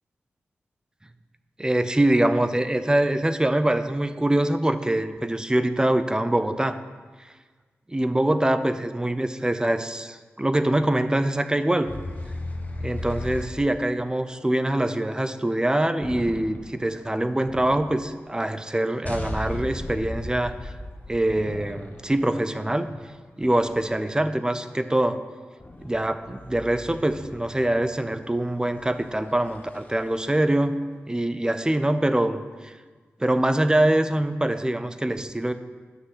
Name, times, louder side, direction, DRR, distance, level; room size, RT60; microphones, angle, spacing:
voice 1, 1.6-6.8 7.9-11.9 12.8-20.7 21.1-22.9 23.4-25.2 25.8-30.8 31.1-32.7 33.2-35.5, right 1 dB, 15° right, 10 dB, 0.6 m, -24 dB
sound 1, 11.9-13.6 16.0-16.8 17.5-18.3 19.0-24.2 25.6-30.5, left 1 dB, 35° left, 1.1 m, -37 dB
9.8 x 6.3 x 6.1 m, 1.5 s
cardioid pair, 55°, 5 cm